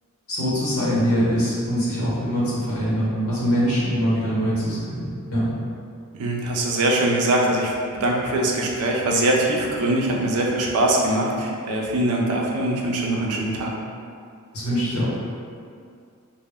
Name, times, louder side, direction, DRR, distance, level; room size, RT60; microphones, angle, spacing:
voice 1, 0.3-5.5 14.5-15.1, equal, 75° left, -8 dB, 1.0 m, -23 dB
voice 2, 6.1-13.8, right 1 dB, 85° right, -1 dB, 0.4 m, -22 dB
2.1 x 2.0 x 3.3 m, 2.3 s
head